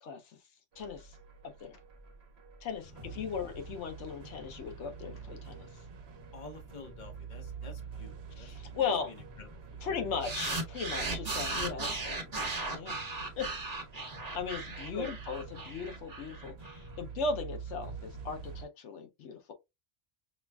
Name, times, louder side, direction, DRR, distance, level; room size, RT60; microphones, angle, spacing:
voice 1, 0.0-0.4 0.8-1.2 1.4-1.8 2.6-5.7 8.4-9.1 9.8-12.3 12.7-13.0 13.4-13.5 14.3-19.5, left 5 dB, 85° left, 1.0 m, -37 dB
sound 1, 0.7-18.6, right 5 dB, 65° right, 1.1 m, -46 dB
voice 2, 6.3-8.9 9.4-9.8 11.9-12.1 14.9-15.1, left 2 dB, 45° left, 1.1 m, -48 dB
sound 2, 10.2-16.7, right 3 dB, 35° right, 1.2 m, -36 dB
6.1 x 2.3 x 2.2 m
omnidirectional pair, 1.2 m